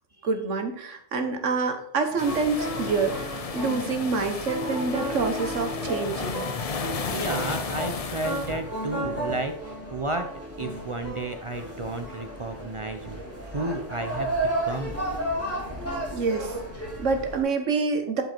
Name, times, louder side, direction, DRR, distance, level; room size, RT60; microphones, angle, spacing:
voice 1, 0.2-6.5 16.1-18.2, right 4 dB, 90° right, 6 dB, 1.6 m, -27 dB
sound 1, 2.2-8.6, left 5 dB, 40° left, 0.6 m, -34 dB
sound 2, 2.2-17.4, right 1 dB, 10° left, 3.8 m, -33 dB
voice 2, 7.1-10.3 10.6-13.2 13.5-15.0, right 2 dB, 35° right, 7 dB, 0.5 m, -32 dB
11.5 x 5.5 x 4.5 m, 0.65 s
omnidirectional pair, 1.2 m